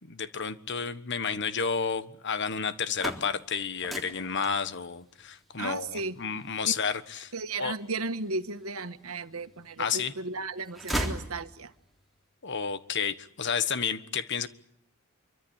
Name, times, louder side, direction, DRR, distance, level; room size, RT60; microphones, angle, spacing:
voice 1, 0.0-7.3 7.6-7.7 9.8-10.1 12.4-14.5, left 6 dB, 55° left, 12 dB, 1.4 m, -31 dB
sound 1, 2.7-8.6 9.2-10.0 10.3-11.9, right 1 dB, ahead, 3.4 m, -38 dB
voice 2, 5.6-6.1 7.3-11.7, right 3 dB, 85° right, 9 dB, 1.6 m, -35 dB
26.0 x 24.0 x 9.0 m, 0.70 s
head